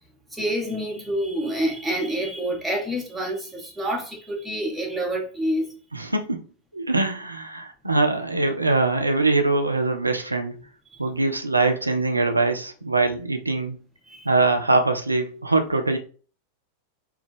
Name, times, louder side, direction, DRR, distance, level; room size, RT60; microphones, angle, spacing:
voice 1, 0.3-5.7 10.9-11.0 14.1-14.3, right 1 dB, 5° right, 1.2 m, -27 dB
voice 2, 5.9-6.4 6.7-10.5 11.0-13.8 14.3-16.0, right 3 dB, 85° right, 0.4 m, -22 dB
4.2 x 2.3 x 3.4 m
figure-of-eight pair, 90°, 0 cm